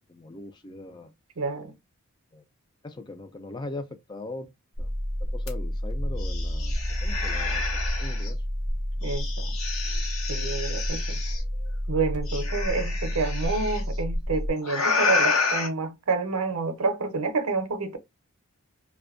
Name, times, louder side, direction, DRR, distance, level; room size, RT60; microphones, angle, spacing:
voice 1, 0.1-1.1 2.3-2.4 2.8-4.5 4.8-4.9 5.3-7.6 8.0-8.4, left 2 dB, 20° left, 0.3 m, -40 dB
voice 2, 1.4-1.7 9.0-9.5 10.3-11.2 11.9-18.0, right 4 dB, 75° right, 0.6 m, -28 dB
sound 1, 4.8-14.5, equal, 35° left, 0.9 m, -30 dB
sound 2, 5.5-5.6 5.9-8.3 9.0-11.4 12.3-13.8 14.6-15.7, left 4 dB, 70° left, 0.8 m, -29 dB
2.5 x 2.2 x 2.4 m
head